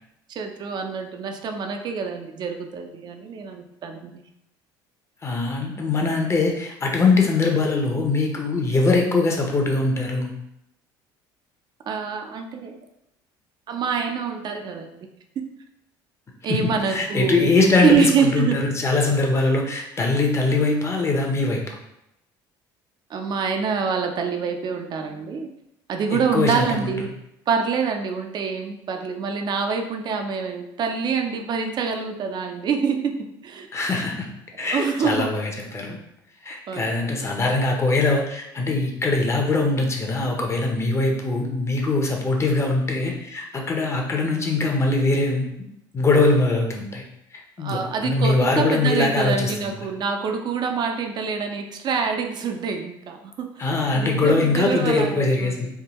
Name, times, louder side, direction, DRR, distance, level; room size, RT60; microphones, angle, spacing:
voice 1, 0.3-4.2 11.9-12.8 13.7-15.1 15.4-15.5 16.4-17.5 17.8-18.6 23.1-25.5 25.9-27.1 27.5-33.2 33.4-33.7 34.7-35.3 36.7-37.0 47.6-55.7, right 5 dB, 45° right, 5 dB, 0.5 m, -26 dB
voice 2, 5.2-10.3 16.5-21.6 26.1-26.9 33.7-34.3 34.6-36.0 36.4-45.5 45.9-47.0 47.6-49.7 53.6-55.7, left 3 dB, 25° left, 1 dB, 0.7 m, -22 dB
3.5 x 2.2 x 2.9 m, 0.82 s
supercardioid pair, 80°, 10 cm